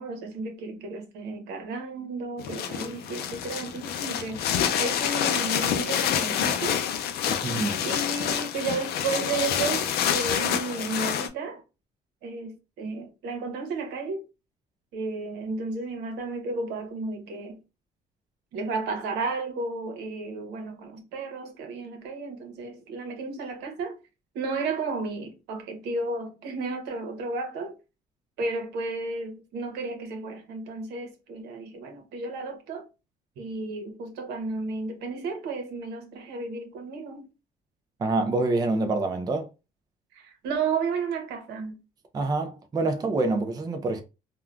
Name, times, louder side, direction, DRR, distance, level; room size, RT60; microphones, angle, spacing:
voice 1, 0.0-6.8 7.8-11.6 12.2-14.2 14.9-17.6 18.5-24.0 24.3-27.7 28.4-32.8 33.4-37.2 40.1-41.8, right 3 dB, 80° right, 0.8 m, -33 dB
sound 1, 2.4-11.3, left 9 dB, 70° left, 0.4 m, -27 dB
voice 2, 7.3-7.8 38.0-39.5 42.1-44.0, right 3 dB, 25° right, 0.4 m, -26 dB
3.6 x 2.2 x 2.3 m
cardioid pair, 110°, 17 cm